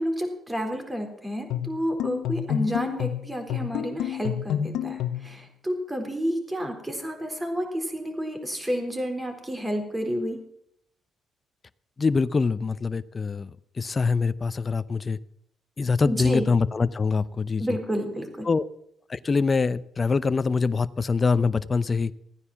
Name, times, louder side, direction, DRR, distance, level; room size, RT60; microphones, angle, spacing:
voice 1, 0.0-10.4 16.0-16.5 17.6-18.5, equal, 15° right, 5 dB, 3.9 m, -30 dB
sound 1, 1.5-5.3, left 10 dB, 85° left, 0.8 m, -29 dB
voice 2, 12.0-15.2 15.8-17.6 18.4-18.7 19.1-22.1, left 4 dB, 35° left, 15 dB, 0.6 m, -24 dB
15.0 x 9.8 x 7.1 m, 0.71 s
cardioid pair, 90°, 0 cm